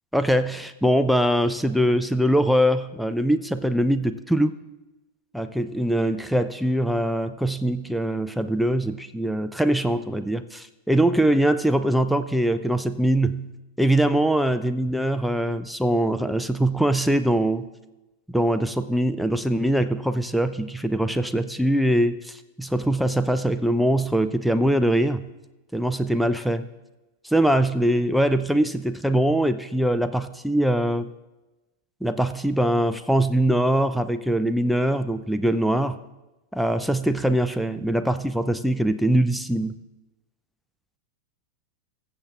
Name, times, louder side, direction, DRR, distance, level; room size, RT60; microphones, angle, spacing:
voice 1, 0.1-4.5 5.3-17.7 18.3-25.3 25.7-26.7 27.3-31.1 32.0-36.0 36.5-39.8, right 1 dB, ahead, 10 dB, 0.4 m, -22 dB
21.0 x 7.2 x 2.4 m, 1.0 s
figure-of-eight pair, 90°, 0 cm